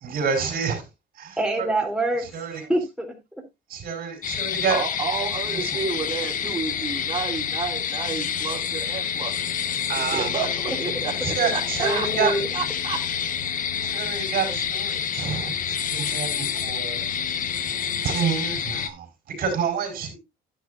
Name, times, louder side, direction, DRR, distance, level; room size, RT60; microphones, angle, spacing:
voice 1, 0.0-0.8 1.2-1.3 1.6-1.7 2.2-2.7 3.7-4.8 5.5-5.8 9.9-10.5 11.1-12.4 13.8-17.1 18.0-20.2, right 6 dB, 60° right, 4.8 m, -28 dB
voice 2, 1.4-2.3 2.5-3.2 11.8-12.5, right 1 dB, 5° right, 3.1 m, -25 dB
sound 1, 4.2-18.9, left 8 dB, 55° left, 1.2 m, -28 dB
voice 3, 4.7-9.3 10.1-13.0, right 5 dB, 30° right, 3.4 m, -31 dB
10.5 x 10.0 x 2.6 m
cardioid pair, 110°, 17 cm